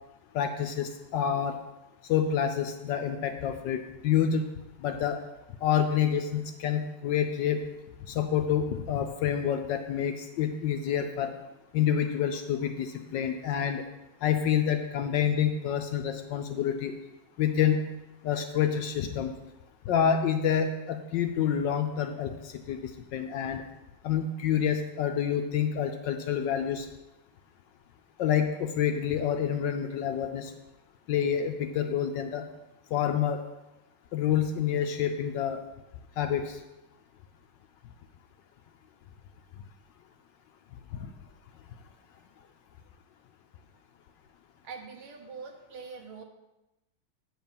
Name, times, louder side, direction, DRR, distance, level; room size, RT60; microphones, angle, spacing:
voice 1, 0.3-1.6 2.1-4.5 4.8-5.2 5.6-7.6 8.1-11.3 11.7-13.8 14.2-16.9 17.4-17.8 18.2-19.3 19.9-22.8 23.1-23.6 24.0-26.9 28.2-30.5 31.1-32.4 32.9-33.4 34.1-35.6 36.2-36.6, left 8 dB, 70° left, 6 dB, 1.1 m, -28 dB
voice 2, 44.6-46.2, right 5 dB, 75° right, 3 dB, 1.9 m, -43 dB
8.7 x 4.5 x 7.0 m, 1.0 s
omnidirectional pair, 2.3 m